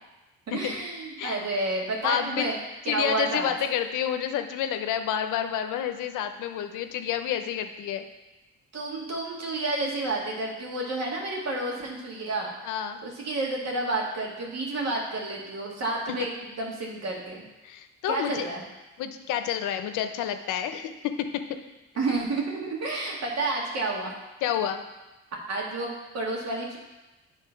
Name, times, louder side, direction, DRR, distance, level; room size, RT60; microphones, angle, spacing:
voice 1, 0.5-2.6 2.9-3.5 8.7-12.5 13.0-17.4 18.1-18.6 22.0-24.1 25.5-26.8, right 2 dB, 60° right, -2 dB, 2.0 m, -30 dB
voice 2, 2.0-2.5 2.9-8.1 12.6-13.0 17.6-18.5 19.0-20.9 24.4-24.8, left 9 dB, 90° left, 8 dB, 0.7 m, -29 dB
9.1 x 3.7 x 5.8 m, 1.1 s
cardioid pair, 90°, 30 cm